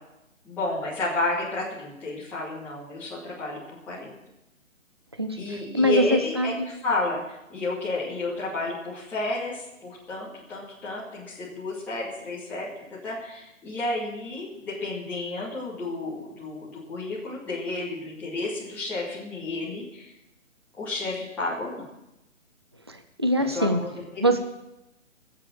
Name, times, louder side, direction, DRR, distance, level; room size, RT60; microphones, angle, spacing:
voice 1, 0.4-3.6 3.9-4.1 5.3-12.7 13.0-20.1 20.8-21.9 23.4-23.9 24.3-24.4, left 2 dB, 5° left, -10 dB, 2.4 m, -31 dB
voice 2, 5.2-6.7 22.9-23.8 24.2-24.4, equal, 20° right, 8 dB, 0.5 m, -24 dB
19.0 x 7.7 x 7.6 m, 0.90 s
hypercardioid pair, 165°, 39 cm